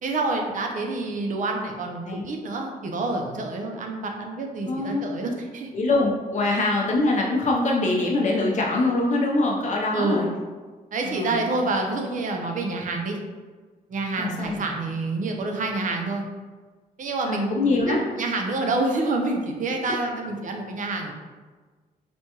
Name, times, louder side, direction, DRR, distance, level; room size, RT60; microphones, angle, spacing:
voice 1, 0.0-5.7 6.4-6.6 9.9-10.3 10.9-13.2 13.9-16.3 17.0-21.1, right 2 dB, 55° right, 2 dB, 0.6 m, -27 dB
voice 2, 4.7-5.1 5.7-10.3 11.0-11.4 14.2-14.6 17.3-18.0 19.8-19.9, left 2 dB, 50° left, -2 dB, 0.6 m, -23 dB
4.3 x 2.3 x 2.9 m, 1.4 s
cardioid pair, 100°, 16 cm